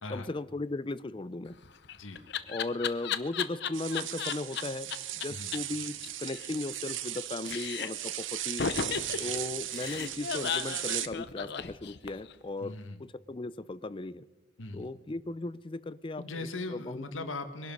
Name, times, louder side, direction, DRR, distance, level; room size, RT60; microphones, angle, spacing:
voice 1, 0.1-1.6 2.5-8.6 9.2-12.7 13.0-14.3 14.7-16.2 16.7-17.3, left 2 dB, 25° left, 16 dB, 0.5 m, -37 dB
Laughter, 1.5-4.6 4.9-5.0 5.2-5.3 5.5-5.6 5.9-7.2 7.4-8.1 8.6-12.3, left 7 dB, 60° left, 0.8 m, -34 dB
voice 2, 1.9-2.3 5.3-5.5 9.1-9.3 12.6-13.0 14.6-14.9 16.2-17.7, left 2 dB, 90° left, 8 dB, 1.6 m, -40 dB
sound 1, 3.7-11.1, right 13 dB, 75° right, 0.8 m, -37 dB
23.0 x 11.5 x 5.4 m, 1.2 s
head